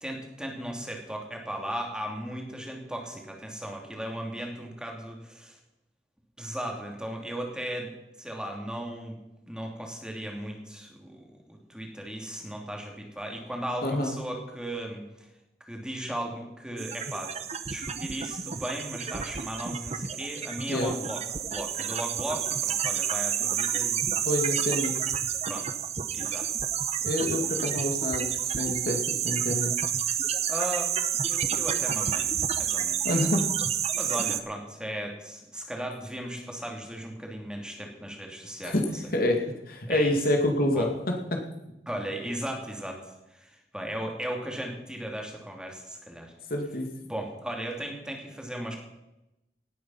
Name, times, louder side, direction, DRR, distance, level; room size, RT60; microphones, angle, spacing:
voice 1, 0.0-5.6 6.4-7.9 8.2-9.2 9.5-15.3 15.7-17.3 17.7-24.0 24.9-25.1 25.4-25.7 26.1-26.5 27.5-27.8 30.5-30.9 31.3-33.2 33.9-39.0 39.9-40.1 40.7-40.9 41.9-46.3 47.0-48.8, right 1 dB, 5° right, 1 dB, 2.7 m, -36 dB
voice 2, 13.8-14.1 20.7-20.9 24.2-25.0 27.0-29.7 33.0-33.5 38.6-38.8 39.1-41.4 46.5-46.9, left 1 dB, 55° left, 3 dB, 2.2 m, -27 dB
sound 1, 16.8-34.4, right 8 dB, 40° right, 0.9 m, -29 dB
18.0 x 9.2 x 5.7 m, 0.90 s
head